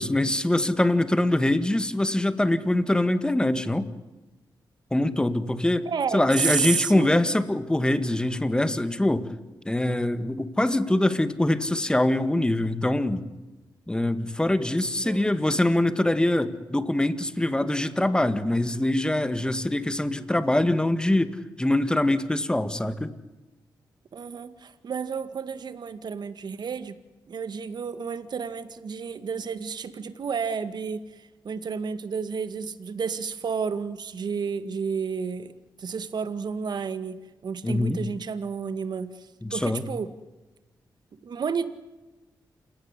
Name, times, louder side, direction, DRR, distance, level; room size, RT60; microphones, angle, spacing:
voice 1, 0.0-3.9 4.9-9.3 9.7-13.3 13.9-23.1 37.6-38.0 39.4-39.8, left 1 dB, 10° left, 11 dB, 1.9 m, -24 dB
voice 2, 5.9-7.3 15.0-15.3 24.1-27.0 27.3-40.1 41.2-41.7, right 6 dB, 65° right, 11 dB, 2.0 m, -31 dB
29.0 x 17.0 x 9.9 m, 1.1 s
cardioid pair, 100°, 8 cm